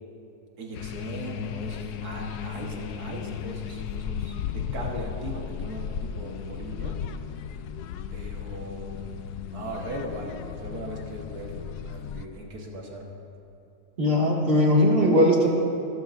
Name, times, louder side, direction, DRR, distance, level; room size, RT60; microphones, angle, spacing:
voice 1, 0.6-7.0 8.1-9.0 9.5-13.1, right 1 dB, 70° right, -1 dB, 1.9 m, -39 dB
sound 1, 0.7-12.3, left 7 dB, 85° left, 1.2 m, -35 dB
voice 2, 14.0-15.5, equal, 35° right, -3 dB, 2.1 m, -19 dB
26.0 x 13.0 x 2.6 m, 2.8 s
omnidirectional pair, 1.7 m